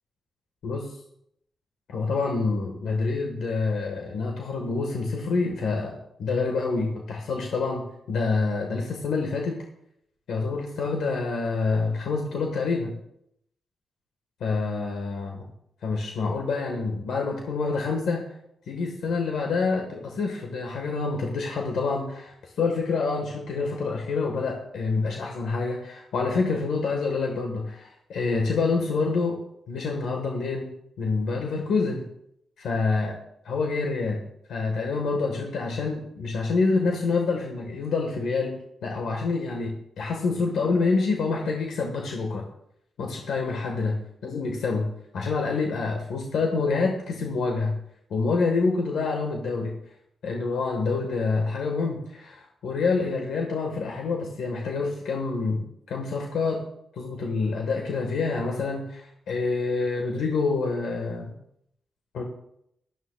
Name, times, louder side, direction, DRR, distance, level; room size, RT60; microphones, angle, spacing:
voice 1, 1.9-9.6 10.3-13.0 14.4-15.4 15.8-18.3 18.7-29.4 29.7-30.7 31.0-32.0 32.6-33.2 33.4-34.2 34.5-38.6 38.8-42.5 43.0-47.8 48.1-49.8 50.2-56.6 57.0-61.3 62.1-62.2, left 4 dB, 85° left, 1 dB, 1.5 m, -27 dB
17.5 x 12.5 x 2.4 m, 0.77 s
wide cardioid pair, 125°, 0 cm